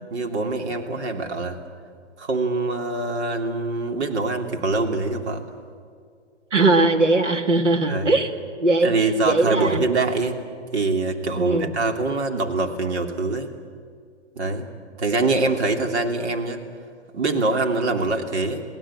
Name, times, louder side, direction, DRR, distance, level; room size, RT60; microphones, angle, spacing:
voice 1, 0.1-1.6 2.2-5.4 7.9-8.2 8.8-10.4 10.7-13.5 14.3-14.7 15.0-16.6 17.1-18.6, right 3 dB, 65° right, 4 dB, 3.2 m, -24 dB
voice 2, 6.5-8.3 8.6-9.8 11.4-11.8, right 2 dB, 85° right, 5 dB, 2.3 m, -20 dB
29.0 x 18.0 x 8.9 m, 2.1 s
figure-of-eight pair, 115°, 36 cm